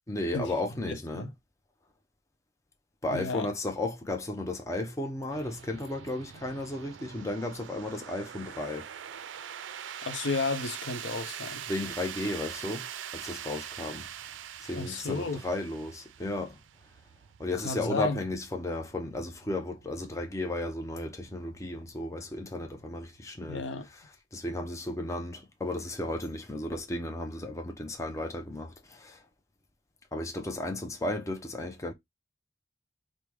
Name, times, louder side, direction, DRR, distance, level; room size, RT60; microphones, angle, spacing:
voice 1, 0.1-1.3 3.0-8.9 11.7-12.9 13.1-14.1 14.6-16.6 17.4-23.6 24.3-29.2 30.1-31.9, left 1 dB, 15° left, 0.5 m, -34 dB
voice 2, 0.9-1.3 3.1-3.5 10.0-11.6 14.7-15.4 17.6-18.2 23.5-23.9, left 3 dB, 70° left, 0.6 m, -33 dB
sound 1, 5.3-23.9, right 9 dB, 80° right, 0.4 m, -44 dB
4.8 x 2.1 x 3.3 m
head